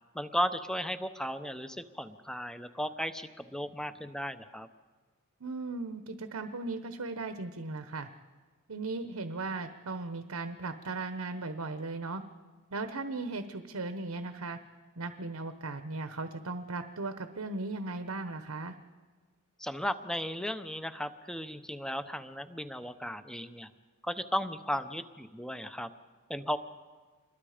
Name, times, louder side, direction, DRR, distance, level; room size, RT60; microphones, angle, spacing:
voice 1, 0.1-4.7 19.6-23.7 24.0-25.9 26.3-26.6, equal, 5° left, 10 dB, 0.8 m, -35 dB
voice 2, 5.4-8.1 8.7-12.2 12.7-14.6 15.0-18.7, right 3 dB, 80° right, 9 dB, 1.0 m, -37 dB
27.0 x 21.5 x 5.0 m, 1.4 s
head